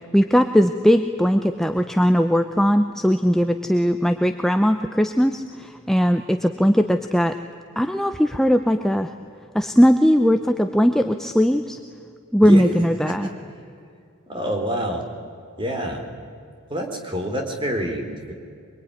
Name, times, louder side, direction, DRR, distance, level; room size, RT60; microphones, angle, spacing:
voice 1, 0.1-7.3 7.8-9.1 9.5-11.8 12.3-13.3, equal, ahead, 7 dB, 0.7 m, -19 dB
voice 2, 14.3-15.1 15.6-16.0 16.7-18.3, equal, 20° right, 3 dB, 3.5 m, -27 dB
24.0 x 23.0 x 9.8 m, 2.4 s
head